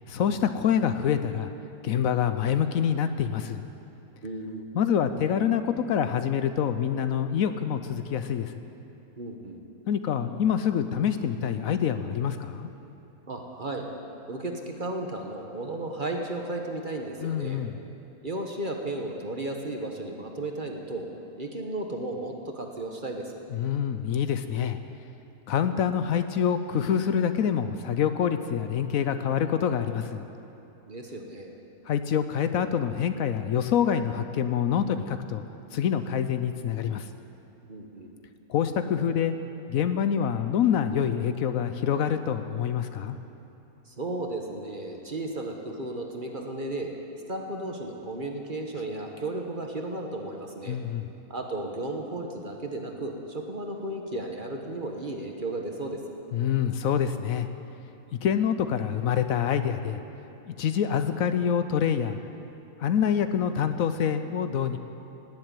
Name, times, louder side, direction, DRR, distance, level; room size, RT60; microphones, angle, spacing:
voice 1, 0.1-1.5 1.8-3.6 4.7-8.5 9.9-12.7 17.2-17.7 23.5-24.8 25.5-30.2 31.9-35.4 35.7-37.1 38.5-39.3 39.7-43.2 50.7-51.1 56.3-57.5 58.2-60.0 60.5-62.2 62.8-64.8, left 8 dB, 70° left, 10 dB, 1.0 m, -26 dB
voice 2, 4.2-4.6 9.2-9.6 13.3-13.9 14.3-17.6 18.2-21.1 21.4-23.4 30.9-31.5 37.7-38.1 43.9-46.9 47.3-50.8 51.3-56.0, right 2 dB, 35° right, 2 dB, 1.3 m, -34 dB
18.0 x 7.8 x 9.0 m, 3.0 s
omnidirectional pair, 1.6 m